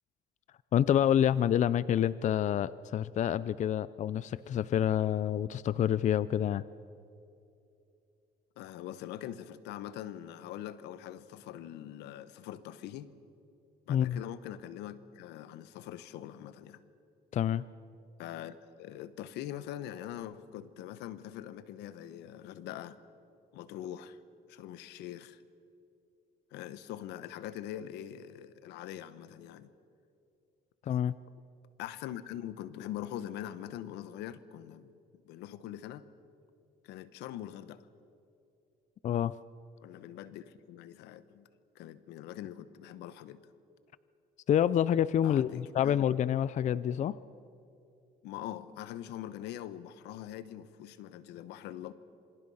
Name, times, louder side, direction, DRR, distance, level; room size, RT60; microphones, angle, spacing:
voice 1, 0.7-6.6 13.9-14.2 17.3-17.6 30.9-31.1 39.0-39.3 44.5-47.2, left 10 dB, 45° left, 17 dB, 0.5 m, -27 dB
voice 2, 8.6-13.1 13.9-16.9 18.2-23.0 23.5-24.2 24.5-25.4 26.5-29.7 31.8-34.9 35.2-36.0 36.8-37.8 39.8-41.5 41.7-43.4 45.2-46.0 48.2-51.9, left 11 dB, 90° left, 14 dB, 1.1 m, -43 dB
27.0 x 25.5 x 5.6 m, 2.6 s
cardioid pair, 110°, 17 cm